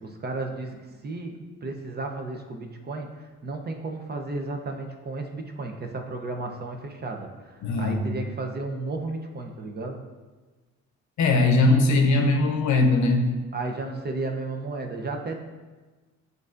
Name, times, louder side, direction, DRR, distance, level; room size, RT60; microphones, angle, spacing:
voice 1, 0.0-0.7 1.0-10.0 13.5-15.4, right 3 dB, 35° right, 3 dB, 0.6 m, -33 dB
voice 2, 7.6-8.1 11.2-13.3, left 2 dB, 70° left, 4 dB, 0.7 m, -20 dB
7.8 x 2.6 x 2.5 m, 1.3 s
cardioid pair, 90°, 30 cm